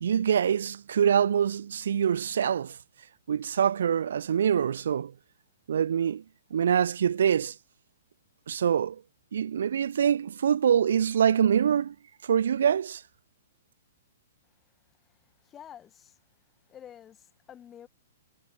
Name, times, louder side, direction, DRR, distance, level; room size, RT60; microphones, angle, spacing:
voice 1, 0.0-2.8 3.3-5.1 5.7-6.2 6.5-7.5 8.5-9.0 9.3-11.9 12.2-13.0, right 8 dB, 55° right, 0.7 m, -25 dB
voice 2, 15.4-16.2 16.7-17.9, left 9 dB, 20° left, 1.7 m, -49 dB
figure-of-eight pair, 115°, 0 cm